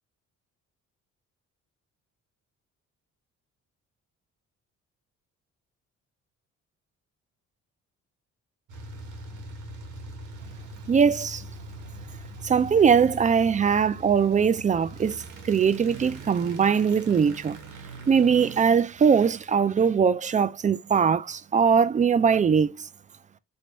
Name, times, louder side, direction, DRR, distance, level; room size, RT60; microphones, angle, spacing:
sound 1, 8.7-19.8, right 2 dB, 85° right, 1.5 m, -42 dB
voice 1, 10.9-11.4 12.4-15.2 15.4-17.6 18.1-22.8, right 6 dB, 25° right, 0.4 m, -21 dB
4.1 x 3.2 x 2.9 m
cardioid pair, 90°, 30 cm